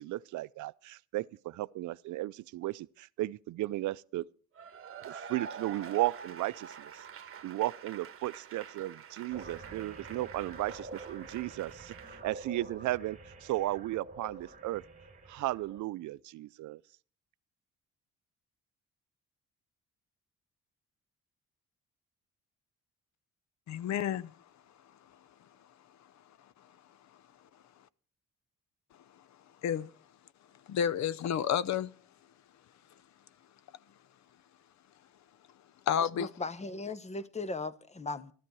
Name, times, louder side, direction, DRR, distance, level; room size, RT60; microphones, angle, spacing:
voice 1, 0.0-4.3 5.0-7.0 7.4-14.8 15.3-16.8, right 16 dB, 75° right, 0.5 m, -35 dB
Cheering / Applause / Crowd, 4.6-12.2, right 7 dB, 45° right, 1.2 m, -47 dB
sound 1, 9.3-15.8, right 2 dB, 25° right, 2.5 m, -48 dB
voice 2, 23.7-24.3 29.6-29.9 30.7-31.9 35.9-36.3, left 9 dB, 65° left, 0.7 m, -30 dB
voice 3, 36.1-38.3, left 3 dB, 20° left, 1.0 m, -38 dB
13.5 x 13.0 x 4.7 m
cardioid pair, 90°, 30 cm